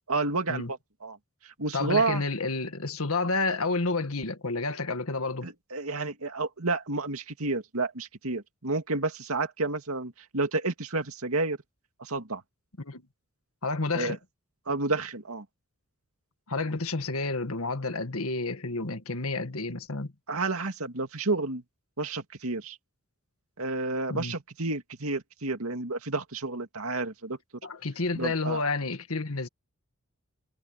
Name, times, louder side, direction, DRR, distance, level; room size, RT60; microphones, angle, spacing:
voice 1, 0.1-1.2 1.4-2.2 5.4-11.6 12.0-12.4 13.9-14.2 14.7-15.4 20.3-21.6 22.0-22.8 23.6-27.4 28.1-28.6, right 3 dB, 75° right, 2.4 m, -30 dB
voice 2, 1.7-5.5 12.8-13.0 13.6-14.2 16.5-20.1 24.1-24.3 27.6-29.5, left 3 dB, 75° left, 1.8 m, -30 dB
head